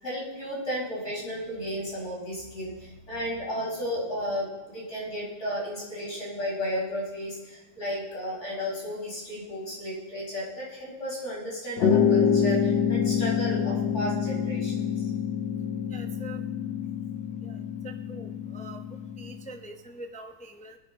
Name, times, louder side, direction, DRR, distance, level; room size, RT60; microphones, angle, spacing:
voice 1, 0.0-4.5 4.7-15.1, equal, 40° left, -6 dB, 5.8 m, -33 dB
sound 1, 11.8-19.5, left 7 dB, 80° left, 1.5 m, -27 dB
voice 2, 15.9-16.4 17.4-18.8 19.2-20.8, right 2 dB, 10° left, 4 dB, 0.4 m, -44 dB
22.0 x 10.5 x 4.1 m, 1.1 s
omnidirectional pair, 1.9 m